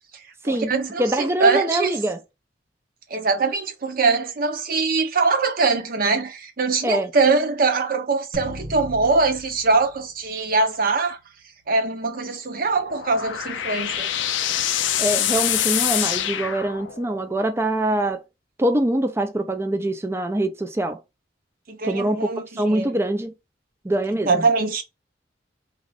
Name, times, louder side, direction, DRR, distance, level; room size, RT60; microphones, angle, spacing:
voice 1, 0.4-2.0 3.1-11.2 11.7-14.1 21.7-22.9 24.1-24.8, right 4 dB, 50° right, 0.6 m, -22 dB
voice 2, 1.0-2.2 6.8-7.1 15.0-18.2 18.6-21.0 21.8-23.3 23.8-24.5, right 1 dB, 15° right, 0.4 m, -24 dB
sound 1, 8.3-10.9, right 1 dB, 85° right, 1.3 m, -38 dB
sound 2, 12.7-17.2, left 11 dB, 85° left, 0.4 m, -25 dB
2.5 x 2.4 x 3.2 m
head